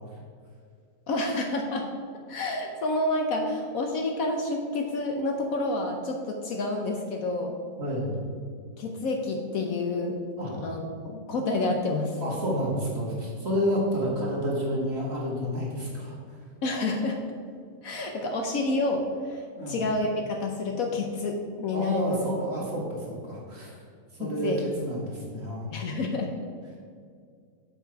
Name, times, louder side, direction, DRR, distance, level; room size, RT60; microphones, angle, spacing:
voice 1, 1.1-1.9 2.3-7.6 8.8-10.2 10.6-12.2 16.6-17.2 17.8-22.2 24.2-24.6 25.7-26.3, left 2 dB, 65° left, 3 dB, 1.1 m, -29 dB
voice 2, 7.8-8.2 10.4-10.6 12.2-16.4 19.6-19.8 21.7-23.7 24.1-24.5 24.8-25.7, equal, 40° right, -4 dB, 1.9 m, -30 dB
7.3 x 6.0 x 4.7 m, 2.1 s
omnidirectional pair, 1.8 m